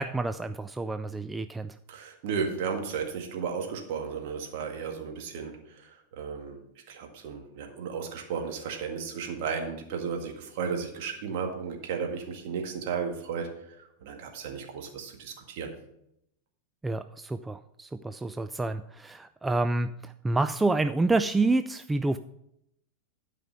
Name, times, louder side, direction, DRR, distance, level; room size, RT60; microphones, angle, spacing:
voice 1, 0.0-1.7 16.8-22.2, right 2 dB, 10° right, 9 dB, 0.3 m, -28 dB
voice 2, 1.9-6.6 6.9-15.7, right 6 dB, 50° right, 3 dB, 1.9 m, -34 dB
12.0 x 5.0 x 5.8 m, 0.78 s
figure-of-eight pair, 90°, 0 cm